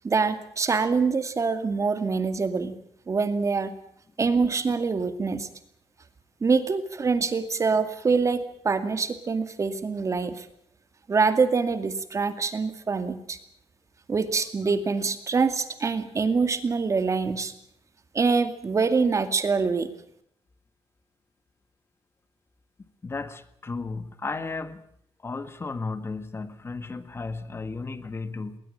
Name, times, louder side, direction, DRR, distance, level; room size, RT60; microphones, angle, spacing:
voice 1, 0.0-2.8 3.1-3.7 4.2-5.5 6.4-10.5 11.1-13.4 14.1-17.5 18.1-19.9, right 4 dB, 35° right, 2.3 m, -25 dB
voice 2, 23.0-24.9 25.2-28.6, left 3 dB, 25° left, 1.7 m, -34 dB
20.0 x 19.5 x 8.7 m
cardioid pair, 120°, 10 cm